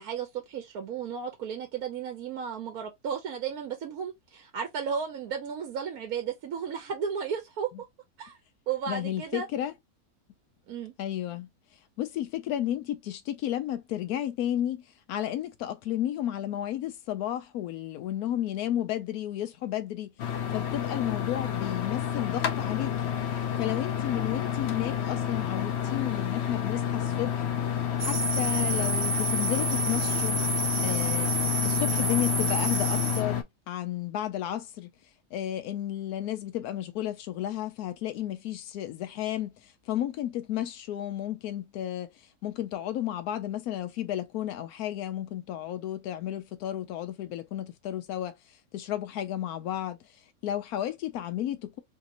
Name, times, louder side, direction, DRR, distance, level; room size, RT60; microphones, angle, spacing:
voice 1, 0.0-7.7 8.2-8.4 8.7-9.5 10.7-10.9, right 7 dB, 80° right, 1.2 m, -34 dB
voice 2, 8.9-9.7 11.0-11.5 12.0-20.1 20.5-23.1 23.6-30.4 30.8-31.3 31.6-34.9 35.3-51.8, left 12 dB, 85° left, 1.1 m, -33 dB
sound 1, 20.2-33.4, left 9 dB, 60° left, 0.8 m, -29 dB
sound 2, 28.0-33.2, right 3 dB, 40° right, 0.8 m, -30 dB
3.3 x 2.5 x 2.9 m
omnidirectional pair, 1.5 m